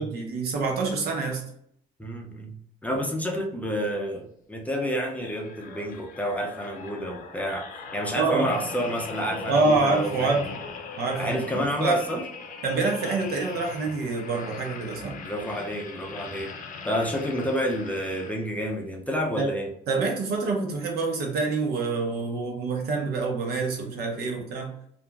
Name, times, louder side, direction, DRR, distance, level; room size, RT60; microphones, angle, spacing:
voice 1, 0.0-1.4 8.1-8.5 9.4-10.5 11.0-12.0 12.6-15.2 19.3-19.5 19.9-24.7, right 3 dB, 70° right, 2 dB, 0.9 m, -26 dB
voice 2, 2.0-7.7 7.9-10.4 11.1-12.2 15.2-16.5 16.8-19.7, equal, 10° left, 1 dB, 0.6 m, -29 dB
sound 1, 5.1-18.7 19.3-19.4, left 4 dB, 50° left, 0.6 m, -40 dB
2.8 x 2.5 x 2.4 m, 0.69 s
cardioid pair, 110°, 17 cm